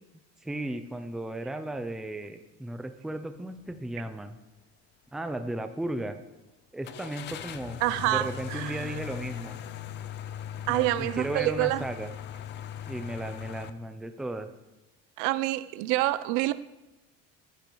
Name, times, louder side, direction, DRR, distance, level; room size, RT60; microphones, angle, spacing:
voice 1, 0.4-4.4 5.1-6.2 6.7-7.8 8.1-9.6 10.6-12.1 12.9-14.5, right 1 dB, ahead, 0.5 m, -35 dB
sound 1, 3.6-3.8 4.3-4.4 6.8-13.7, left 10 dB, 35° left, 0.6 m, -39 dB
voice 2, 7.8-9.0 10.7-11.8 15.2-16.5, right 17 dB, 75° right, 0.7 m, -27 dB
14.5 x 10.0 x 4.6 m
cardioid pair, 170°, 29 cm